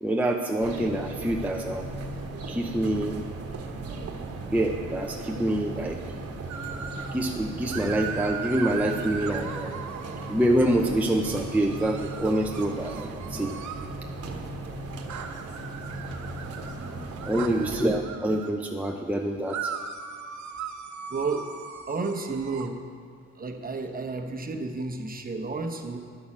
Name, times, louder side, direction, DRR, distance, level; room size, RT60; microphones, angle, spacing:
voice 1, 0.0-1.9 2.5-3.2 4.5-6.0 7.1-9.7 10.3-13.5 17.3-19.7, right 1 dB, 5° right, 1 dB, 0.6 m, -26 dB
sound 1, 0.6-18.0, right 2 dB, 50° right, 1.3 m, -37 dB
sound 2, 6.5-7.2 7.7-10.5 11.2-13.9 15.1-18.5 19.5-22.7, right 7 dB, 70° right, 1.0 m, -38 dB
voice 2, 21.1-21.5 21.9-22.8 23.4-26.0, right 3 dB, 30° right, 5 dB, 1.1 m, -31 dB
10.5 x 6.2 x 7.3 m, 2.2 s
cardioid pair, 90°, 30 cm